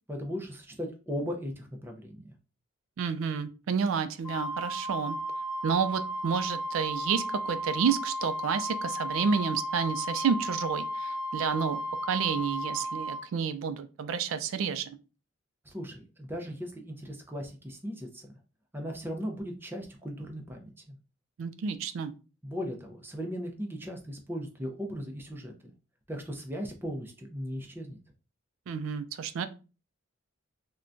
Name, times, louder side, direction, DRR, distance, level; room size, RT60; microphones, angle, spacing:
voice 1, 0.1-2.3 15.7-18.3 18.7-21.0 22.4-25.7 26.1-28.0, equal, 10° right, 2 dB, 0.5 m, -37 dB
voice 2, 3.0-5.2 5.6-14.9 21.4-22.1 28.7-29.5, right 6 dB, 85° right, 10 dB, 0.3 m, -30 dB
Wind instrument woodwind instrument, 4.2-13.2, equal, 20° left, 0.8 m, -34 dB
3.6 x 2.2 x 2.5 m, 0.33 s
head